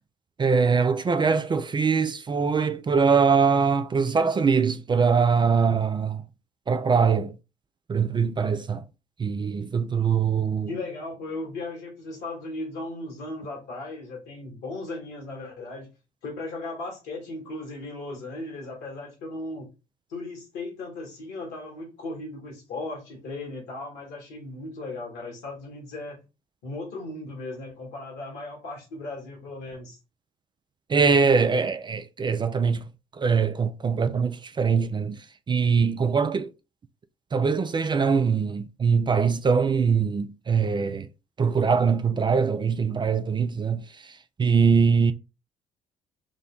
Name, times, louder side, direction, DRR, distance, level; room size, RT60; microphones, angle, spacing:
voice 1, 0.4-6.2 6.7-7.4 7.9-8.9 9.2-10.7 30.9-32.9 33.1-36.5 37.3-41.1 41.4-45.1, right 5 dB, 25° right, 0.4 m, -23 dB
voice 2, 10.7-15.9 16.2-19.7 20.1-26.2 26.6-30.0, left 2 dB, 70° left, 1.6 m, -37 dB
3.8 x 2.2 x 3.7 m
hypercardioid pair, 50°, 17 cm